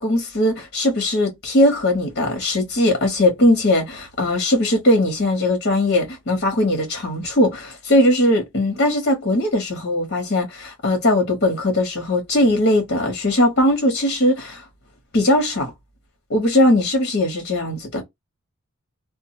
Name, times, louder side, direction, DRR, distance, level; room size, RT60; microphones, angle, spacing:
voice 1, 0.0-14.6 15.1-15.7 16.3-18.0, left 1 dB, 50° left, 1.3 m, -19 dB
2.6 x 2.4 x 2.7 m
head